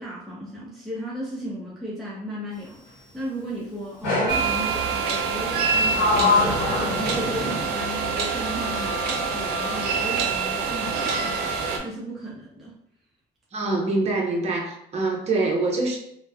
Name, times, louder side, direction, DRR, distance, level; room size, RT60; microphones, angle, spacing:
voice 1, 0.0-2.8 3.1-11.5 11.8-12.7, equal, ahead, -7 dB, 0.6 m, -35 dB
Sliding door, 4.0-4.5 5.5-7.9 8.4-9.8, left 3 dB, 75° left, 1.0 m, -26 dB
sound 1, 4.3-11.8, right 5 dB, 75° right, 0.5 m, -26 dB
voice 2, 13.5-16.0, right 2 dB, 40° right, 0 dB, 0.7 m, -24 dB
3.1 x 2.0 x 2.2 m, 0.72 s
cardioid pair, 110°, 17 cm